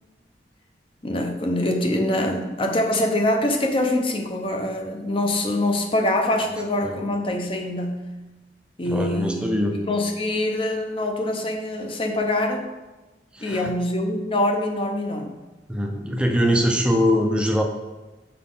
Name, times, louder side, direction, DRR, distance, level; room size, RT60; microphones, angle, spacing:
voice 1, 1.0-8.0 8.8-9.5 9.8-12.7 13.4-15.3, left 1 dB, 30° left, 3 dB, 0.7 m, -24 dB
voice 2, 8.8-9.8 13.3-13.7 15.7-17.6, equal, 5° right, 3 dB, 0.6 m, -22 dB
5.9 x 5.0 x 3.8 m, 1.1 s
head